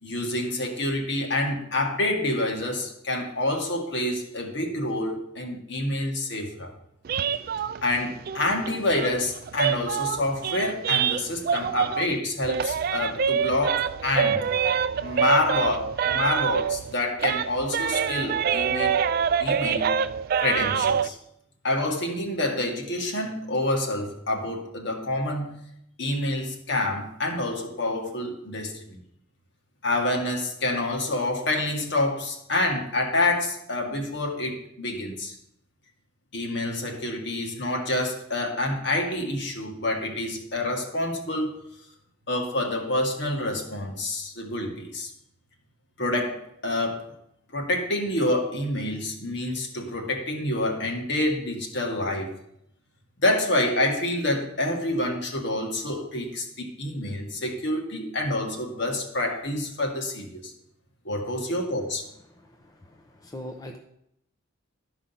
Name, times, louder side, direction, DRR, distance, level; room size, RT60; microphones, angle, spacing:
voice 1, 0.0-6.8 7.8-14.5 15.0-18.9 19.4-20.0 20.4-21.2 21.6-25.6 26.0-29.0 29.8-35.3 36.3-41.5 42.3-45.1 46.0-47.0 47.5-52.3 53.2-60.5 61.0-62.0, left 1 dB, 60° left, 2 dB, 1.7 m, -27 dB
sound 1, 7.0-12.2 12.4-16.9 17.2-21.1, right 7 dB, 50° right, 0.3 m, -26 dB
voice 2, 62.3-63.8, left 1 dB, 20° left, 3 dB, 0.7 m, -42 dB
12.5 x 5.0 x 5.6 m, 0.76 s
head